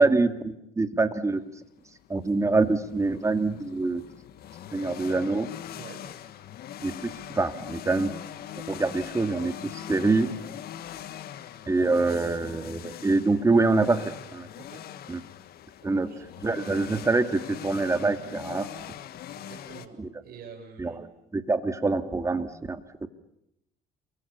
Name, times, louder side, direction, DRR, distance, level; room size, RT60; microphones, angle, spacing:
voice 1, 0.0-1.4 2.1-4.0 4.7-5.5 6.8-8.1 8.7-10.3 11.7-14.5 15.1-15.2 15.8-16.1 16.4-18.7 20.0-20.1 20.8-21.1 21.3-23.1, right 3 dB, 20° right, 9 dB, 2.2 m, -25 dB
sound 1, 1.6-19.9, left 11 dB, 65° left, 1.7 m, -42 dB
voice 2, 5.7-6.1 14.5-14.8 15.8-16.2 19.3-21.1, right 6 dB, 65° right, 3 dB, 6.4 m, -47 dB
28.0 x 24.0 x 7.0 m, 0.78 s
cardioid pair, 110°, 17 cm